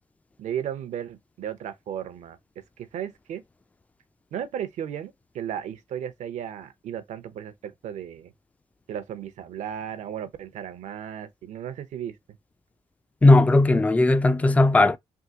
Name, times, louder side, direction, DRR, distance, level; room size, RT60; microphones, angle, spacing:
voice 1, 0.4-2.4 2.8-3.4 4.3-8.3 8.9-12.2, right 9 dB, 75° right, 0.7 m, -35 dB
voice 2, 13.2-15.0, left 2 dB, 10° left, 0.3 m, -17 dB
3.6 x 2.5 x 2.8 m
cardioid pair, 85°, 12 cm